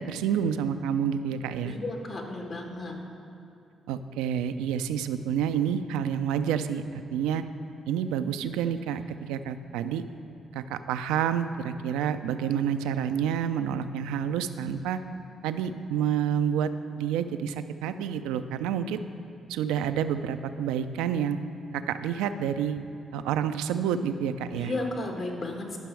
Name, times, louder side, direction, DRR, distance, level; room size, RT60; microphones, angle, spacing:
voice 1, 0.0-1.7 3.9-7.5 7.9-10.0 10.5-15.0 15.4-16.7 17.0-19.0 19.5-21.4 21.7-22.8 23.1-24.7, right 8 dB, 80° right, 10 dB, 0.3 m, -29 dB
voice 2, 1.6-3.0 24.5-25.8, left 2 dB, 60° left, 1 dB, 1.6 m, -34 dB
10.5 x 6.0 x 4.6 m, 2.8 s
hypercardioid pair, 50°, 0 cm